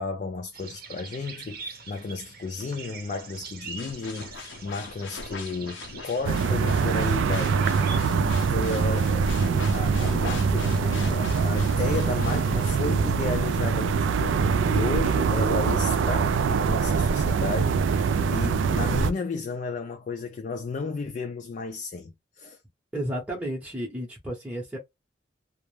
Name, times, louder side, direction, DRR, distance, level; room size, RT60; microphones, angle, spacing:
voice 1, 0.0-9.3 9.7-22.6, left 4 dB, 45° left, 0.3 m, -33 dB
sound 1, 0.5-8.0, right 4 dB, 55° right, 0.7 m, -43 dB
sound 2, 3.8-12.8, left 5 dB, 90° left, 0.5 m, -41 dB
sound 3, 6.2-19.1, right 5 dB, 85° right, 0.3 m, -23 dB
voice 2, 22.9-24.8, equal, 5° right, 0.7 m, -32 dB
2.3 x 2.1 x 3.1 m
head